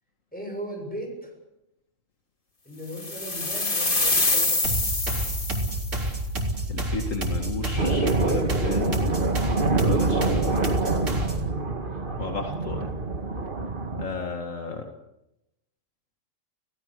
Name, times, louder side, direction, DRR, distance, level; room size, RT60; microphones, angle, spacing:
voice 1, 0.3-1.3 2.6-4.8, equal, 5° left, 0 dB, 7.3 m, -37 dB
sound 1, 3.0-6.0, left 2 dB, 40° left, 2.6 m, -25 dB
sound 2, 4.6-11.5, right 1 dB, 70° right, 4.3 m, -29 dB
voice 2, 6.7-9.0 9.8-10.6 12.2-12.9 14.0-14.9, left 3 dB, 75° left, 4 dB, 2.4 m, -34 dB
sound 3, 7.8-14.1, right 3 dB, 40° right, 1.9 m, -26 dB
29.5 x 17.5 x 6.7 m, 0.87 s
omnidirectional pair, 1.3 m